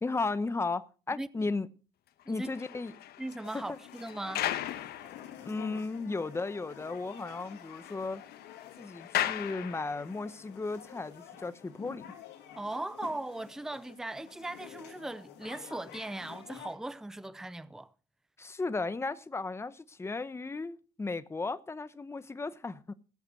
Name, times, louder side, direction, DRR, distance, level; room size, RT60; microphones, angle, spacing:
voice 1, 0.0-1.7 2.3-2.9 3.5-3.8 5.4-8.2 8.8-12.0 18.4-22.9, left 3 dB, 15° left, 0.9 m, -35 dB
sound 1, 2.2-5.7 6.2-6.3 6.7-6.8 7.1-10.3, left 12 dB, 70° left, 1.3 m, -38 dB
voice 2, 2.3-2.7 3.2-4.4 12.6-17.9, right 2 dB, 5° right, 0.6 m, -39 dB
sound 2, 3.4-16.8, left 10 dB, 90° left, 2.8 m, -49 dB
15.5 x 8.1 x 6.4 m
cardioid pair, 110°, 17 cm